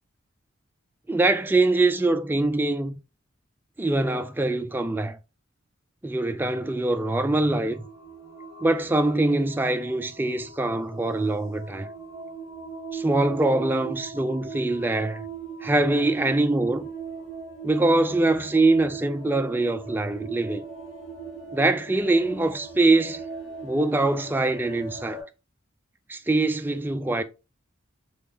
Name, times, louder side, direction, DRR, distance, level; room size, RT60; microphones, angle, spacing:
voice 1, 1.1-2.9 3.8-5.2 6.0-7.9 8.6-11.9 12.9-15.3 15.6-16.9 17.6-20.7 21.5-23.2 23.6-25.2 26.1-27.2, right 2 dB, 10° right, 0.3 m, -23 dB
sound 1, 7.2-25.2, right 4 dB, 65° left, 2.1 m, -40 dB
3.5 x 3.4 x 3.5 m
head